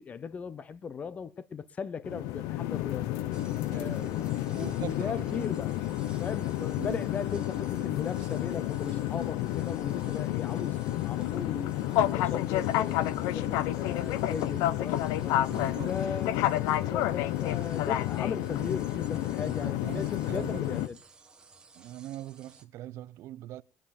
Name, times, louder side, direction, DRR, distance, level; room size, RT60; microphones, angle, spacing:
voice 1, 0.0-3.1 3.7-5.7 6.2-11.7 12.0-15.4 15.9-21.0, left 6 dB, 25° left, 0.7 m, -38 dB
sound 1, 2.0-20.9, left 13 dB, 85° left, 0.6 m, -30 dB
sound 2, 3.3-22.6, right 4 dB, 15° right, 1.5 m, -56 dB
voice 2, 3.7-4.2 4.6-5.5 6.8-7.0 15.5-15.9 19.4-20.8 21.7-23.6, right 14 dB, 60° right, 0.6 m, -42 dB
20.5 x 10.0 x 4.2 m
cardioid pair, 150°, 5 cm